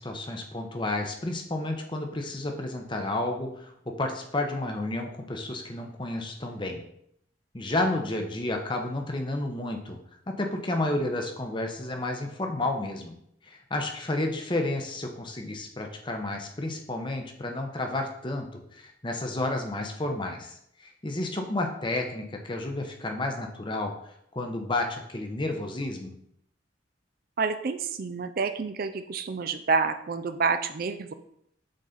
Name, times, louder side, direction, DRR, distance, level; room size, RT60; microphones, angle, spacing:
voice 1, 0.0-6.8 7.5-10.0 10.3-13.2 13.4-23.9 24.3-26.2, left 2 dB, 25° left, 3 dB, 0.8 m, -31 dB
voice 2, 27.4-31.1, right 4 dB, 50° right, 9 dB, 0.4 m, -28 dB
7.6 x 4.1 x 3.9 m, 0.72 s
head